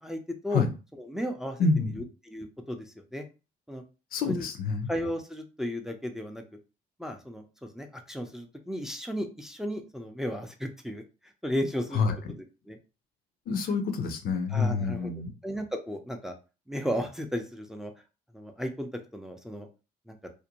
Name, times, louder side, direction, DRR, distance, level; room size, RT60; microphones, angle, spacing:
voice 1, 0.0-0.7 0.9-1.6 1.9-2.9 3.1-3.2 3.7-3.8 4.2-4.5 4.9-6.4 7.0-11.0 11.4-12.0 12.3-12.8 14.5-15.1 15.4-16.3 16.7-17.9 18.3-19.7 20.1-20.2, equal, 5° right, 4 dB, 0.4 m, -34 dB
voice 2, 1.6-1.9 4.1-4.9 11.9-12.1 13.5-15.3, left 4 dB, 60° left, 7 dB, 0.6 m, -27 dB
2.5 x 2.1 x 2.8 m, 0.31 s
cardioid pair, 110°, 17 cm